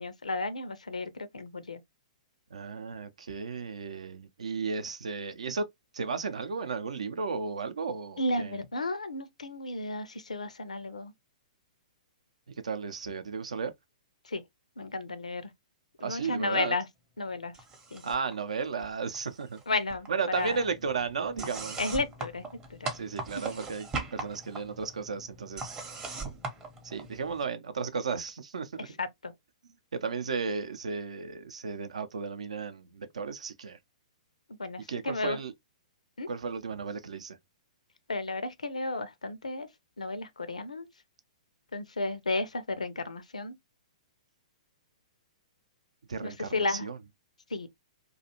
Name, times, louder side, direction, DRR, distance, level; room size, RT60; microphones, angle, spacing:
voice 1, 0.0-1.8 8.2-11.1 14.2-14.4 14.8-15.5 16.0-16.9 17.2-17.6 17.9-18.0 19.7-20.1 20.4-20.6 21.8-22.4 22.7-22.9 28.8-29.3 34.6-35.4 36.2-36.3 38.1-39.7 40.0-40.9 41.7-43.5 46.2-46.9 47.5-47.7, left 2 dB, 80° left, 0.5 m, -33 dB
voice 2, 2.5-5.6 5.9-8.6 12.6-13.7 16.0-16.7 18.0-19.6 20.1-21.8 22.9-25.7 26.8-28.9 30.0-33.8 34.9-35.5 36.3-37.4 46.1-47.0, right 5 dB, 70° right, 0.5 m, -34 dB
sound 1, 17.5-18.3 18.6-19.6 19.9-27.4, right 3 dB, 20° right, 0.7 m, -40 dB
2.5 x 2.3 x 2.7 m
figure-of-eight pair, 115°, 4 cm